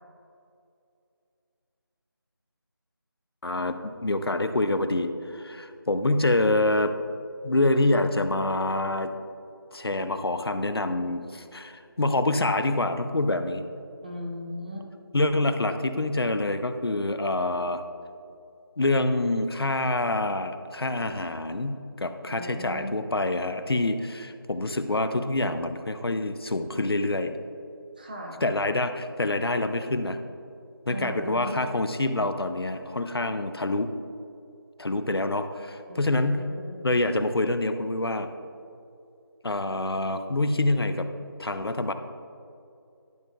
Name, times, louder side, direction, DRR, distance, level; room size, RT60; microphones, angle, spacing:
voice 1, 3.4-6.9 7.4-9.1 9.7-13.6 15.1-17.8 18.8-27.4 28.4-30.2 30.9-33.9 34.8-36.4 36.8-38.3 39.4-41.1 41.4-41.9, left 2 dB, 80° left, 9 dB, 0.7 m, -26 dB
voice 2, 14.0-14.9 15.1-15.4 22.3-23.0 28.0-28.4 30.8-31.6 35.9-36.9, equal, 20° right, -1 dB, 0.9 m, -38 dB
12.0 x 7.1 x 2.3 m, 2.5 s
figure-of-eight pair, 170°, 13 cm